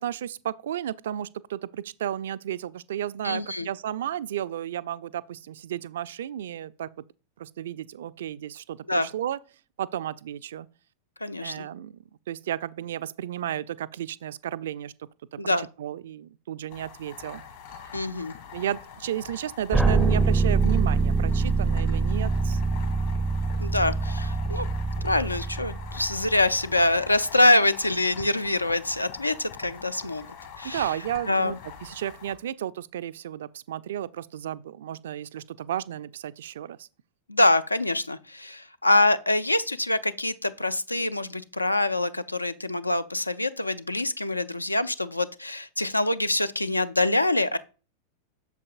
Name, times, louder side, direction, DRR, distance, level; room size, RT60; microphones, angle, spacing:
voice 1, 0.0-6.9 7.4-9.4 9.8-10.7 11.4-12.0 12.3-14.9 15.3-17.4 18.5-22.9 30.6-36.9, right 11 dB, 60° right, 0.3 m, -33 dB
voice 2, 3.2-3.7 8.9-9.1 11.2-11.6 15.4-15.7 17.9-18.3 23.6-24.7 25.0-30.3 30.6-30.9 31.3-31.6 37.3-47.6, left 2 dB, 85° left, 0.4 m, -25 dB
sound 1, 16.7-32.3, left 7 dB, 55° left, 1.7 m, -44 dB
sound 2, 19.7-26.6, right 4 dB, ahead, 0.4 m, -24 dB
8.0 x 6.8 x 2.4 m
figure-of-eight pair, 90°, 0 cm